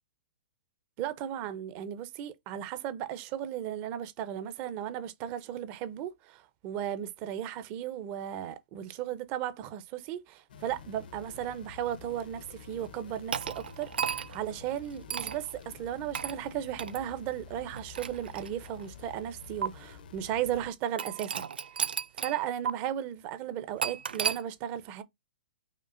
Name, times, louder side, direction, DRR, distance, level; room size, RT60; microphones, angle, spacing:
voice 1, 1.0-21.5 21.7-21.8 22.1-25.0, right 10 dB, 30° right, 0.5 m, -35 dB
sound 1, 10.5-20.7, left 6 dB, 70° left, 0.7 m, -49 dB
sound 2, 13.3-14.5 15.1-15.4 16.1-16.4 16.8-17.0 17.7-18.8 19.6-19.7 21.0-22.4 22.7-22.8 23.8-24.4, right 7 dB, 80° right, 0.4 m, -33 dB
5.1 x 2.4 x 2.4 m
hypercardioid pair, 145°, 5 cm